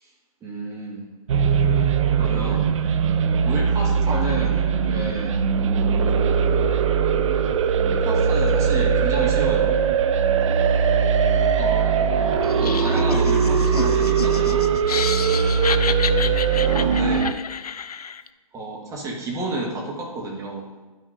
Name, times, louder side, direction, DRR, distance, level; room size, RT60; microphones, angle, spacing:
voice 1, 0.4-1.1 2.2-2.8 3.4-5.4 7.8-9.8 11.6-14.7 16.8-17.4 18.5-20.7, right 2 dB, 15° right, -2 dB, 1.7 m, -31 dB
sound 1, 1.3-17.3, right 6 dB, 55° right, 0.6 m, -20 dB
Laughter, 12.4-18.3, left 6 dB, 85° left, 0.4 m, -30 dB
11.0 x 6.2 x 2.7 m, 1.3 s
hypercardioid pair, 125°, 19 cm